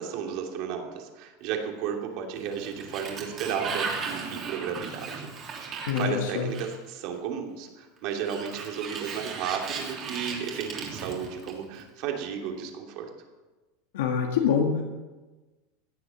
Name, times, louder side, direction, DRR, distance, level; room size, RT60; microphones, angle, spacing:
voice 1, 0.0-5.3 5.6-13.1, right 7 dB, 50° right, 2 dB, 2.9 m, -33 dB
Sliding door, 2.3-7.0 8.1-11.8, right 5 dB, 30° right, 3.1 m, -36 dB
voice 2, 5.9-6.5 13.9-14.8, left 7 dB, 85° left, 1 dB, 1.9 m, -25 dB
16.5 x 10.5 x 7.6 m, 1.2 s
supercardioid pair, 160°, 0 cm